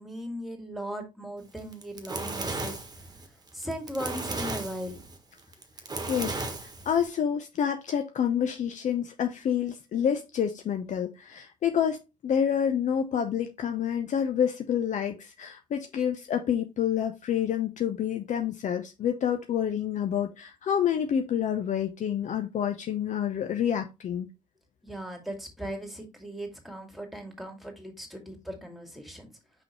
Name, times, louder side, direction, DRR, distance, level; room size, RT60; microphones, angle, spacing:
voice 1, 0.0-2.8 3.5-5.0 24.8-29.3, equal, ahead, 2.3 m, -38 dB
Fire, 1.6-7.1, right 2 dB, 20° right, 1.5 m, -35 dB
voice 2, 6.1-24.3, left 8 dB, 40° left, 0.8 m, -28 dB
6.0 x 5.1 x 3.1 m
figure-of-eight pair, 50°, 18 cm